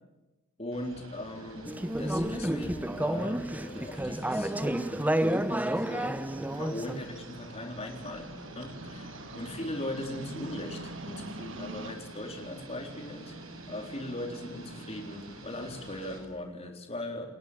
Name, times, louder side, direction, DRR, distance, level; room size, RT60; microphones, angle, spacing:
voice 1, 0.6-5.1 5.5-6.2 6.6-13.3 13.7-17.3, left 1 dB, 30° left, 3 dB, 3.8 m, -39 dB
sound 1, 0.7-16.2, right 1 dB, 85° right, 7.3 m, -47 dB
Conversation / Chatter, 1.7-7.0, right 1 dB, 10° right, 0.9 m, -30 dB
sound 2, 4.2-11.9, right 2 dB, 60° right, 1.9 m, -46 dB
30.0 x 19.0 x 8.7 m, 1.0 s
head